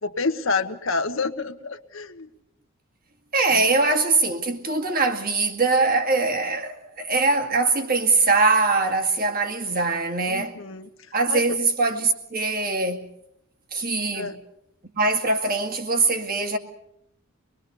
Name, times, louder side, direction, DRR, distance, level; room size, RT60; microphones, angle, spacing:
voice 1, 0.0-2.3 3.5-3.6 10.3-10.9 11.3-11.6 14.1-14.4, left 4 dB, 70° left, 1.3 m, -28 dB
voice 2, 3.3-10.6 11.1-13.1 13.7-14.4 15.0-16.6, right 3 dB, 45° right, 2.0 m, -22 dB
24.5 x 20.5 x 6.9 m
head